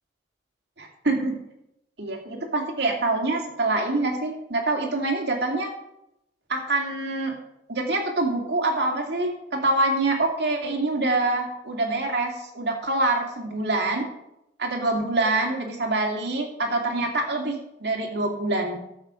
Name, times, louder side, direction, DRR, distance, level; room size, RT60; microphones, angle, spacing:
voice 1, 0.8-1.4 2.0-5.7 6.5-7.3 7.7-14.0 14.6-18.8, right 2 dB, 60° right, 2 dB, 2.3 m, -25 dB
13.0 x 7.4 x 5.0 m, 0.83 s
head